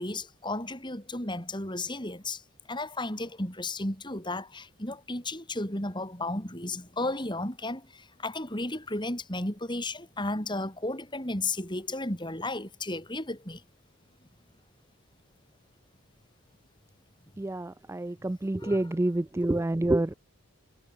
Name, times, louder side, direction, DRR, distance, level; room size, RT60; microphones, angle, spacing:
voice 1, 0.0-2.4 2.7-13.6 18.6-18.9, left 2 dB, 20° left, 6.3 m, -34 dB
voice 2, 17.4-20.1, right 1 dB, 10° right, 0.3 m, -28 dB
head